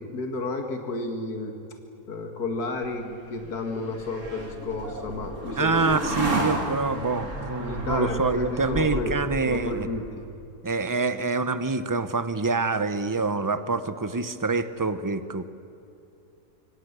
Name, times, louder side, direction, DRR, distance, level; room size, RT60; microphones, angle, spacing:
voice 1, 0.0-1.6 2.1-6.0 7.6-9.2 9.5-10.3, left 3 dB, 70° left, 4 dB, 2.5 m, -32 dB
sound 1, 2.8-10.2, right 1 dB, 50° right, 3.3 m, -32 dB
voice 2, 5.6-9.9 10.6-15.4, right 4 dB, 15° right, 11 dB, 0.7 m, -26 dB
26.5 x 24.5 x 8.3 m, 2.7 s
omnidirectional pair, 1.7 m